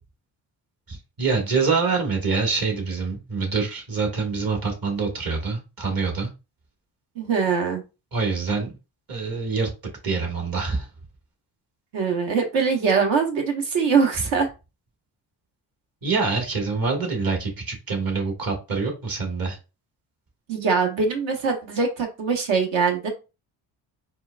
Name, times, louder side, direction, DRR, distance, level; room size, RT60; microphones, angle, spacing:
voice 1, 0.9-6.3 8.1-8.7 9.1-9.7 10.0-10.9 16.0-19.6, right 4 dB, 45° right, 1.5 m, -25 dB
voice 2, 7.2-7.8 11.9-14.5 20.5-23.1, right 5 dB, 65° right, 1.3 m, -22 dB
4.3 x 2.3 x 2.3 m
hypercardioid pair, 50°, 49 cm